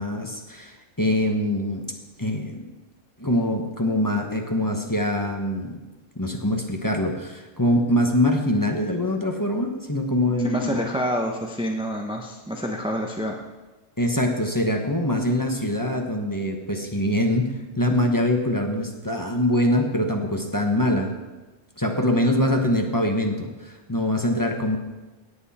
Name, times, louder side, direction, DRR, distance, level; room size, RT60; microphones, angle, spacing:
voice 1, 0.0-1.8 2.2-2.7 3.2-5.8 6.2-10.9 14.0-21.1 21.8-24.8, left 1 dB, 15° left, 2 dB, 1.1 m, -24 dB
voice 2, 10.4-13.4, equal, 5° right, 1 dB, 0.8 m, -27 dB
17.5 x 8.1 x 4.3 m, 1.2 s
omnidirectional pair, 1.3 m